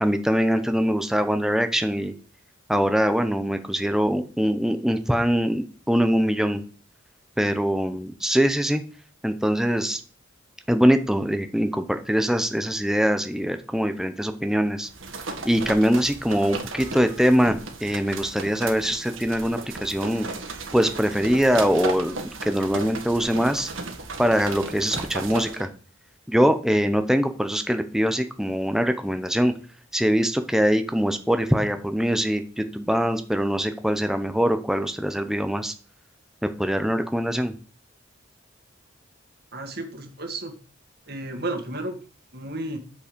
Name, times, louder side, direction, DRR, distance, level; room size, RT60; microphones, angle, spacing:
voice 1, 0.0-2.1 2.7-6.6 7.4-8.8 9.2-10.0 10.7-14.9 15.4-20.3 20.7-23.7 24.2-25.7 26.3-29.5 29.9-35.7 36.4-37.5, equal, ahead, 8 dB, 0.8 m, -23 dB
sound 1, 14.9-25.7, right 3 dB, 85° right, 1.7 m, -35 dB
voice 2, 39.5-40.5 41.1-42.0 42.3-42.8, right 2 dB, 50° right, 5 dB, 2.0 m, -32 dB
8.7 x 5.2 x 6.9 m, 0.39 s
head